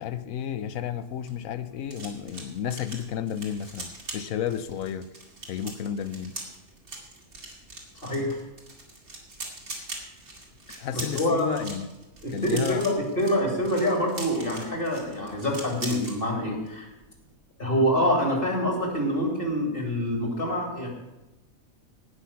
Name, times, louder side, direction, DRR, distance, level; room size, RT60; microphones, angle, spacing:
voice 1, 0.0-5.1 5.5-6.4 10.8-11.9 12.3-12.8, left 9 dB, 75° left, 13 dB, 1.1 m, -32 dB
sound 1, 1.0-16.2 16.5-16.8 17.0-17.3, right 2 dB, 80° right, 2.9 m, -41 dB
voice 2, 8.0-8.4 10.9-11.6 12.2-16.9 17.6-21.0, equal, 40° left, 0 dB, 2.9 m, -26 dB
18.0 x 6.1 x 5.7 m, 0.97 s
omnidirectional pair, 1.5 m